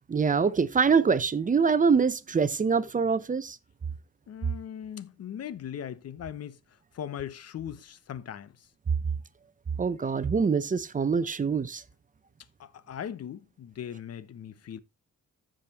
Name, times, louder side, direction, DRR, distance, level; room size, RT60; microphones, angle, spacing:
voice 1, 0.1-3.6 9.8-11.8, right 5 dB, 25° right, 0.7 m, -24 dB
voice 2, 4.3-6.6 6.9-8.7 12.6-14.8, left 9 dB, 55° left, 0.9 m, -39 dB
14.5 x 5.1 x 2.9 m
cardioid pair, 90°, 30 cm